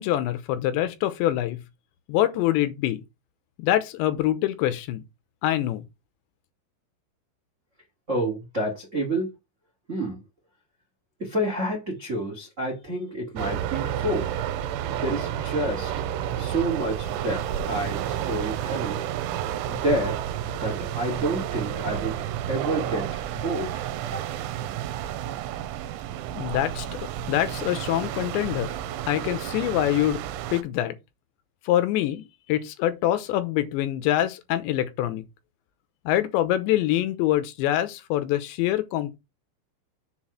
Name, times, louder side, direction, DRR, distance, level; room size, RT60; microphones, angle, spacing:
voice 1, 0.0-1.6 2.1-3.0 3.6-5.0 5.4-5.8 26.3-27.0 27.3-28.8 29.1-30.2 30.5-31.0 31.7-35.2 36.1-39.2, left 13 dB, 75° left, 3.1 m, -25 dB
voice 2, 8.1-9.3 9.9-10.2 11.2-14.5 14.9-15.9 16.4-19.0 19.7-20.2 20.6-22.1 22.5-24.3, right 1 dB, 35° right, 1.2 m, -29 dB
sound 1, 13.4-30.6, right 11 dB, 85° right, 3.1 m, -31 dB
7.0 x 4.7 x 5.7 m
omnidirectional pair, 5.4 m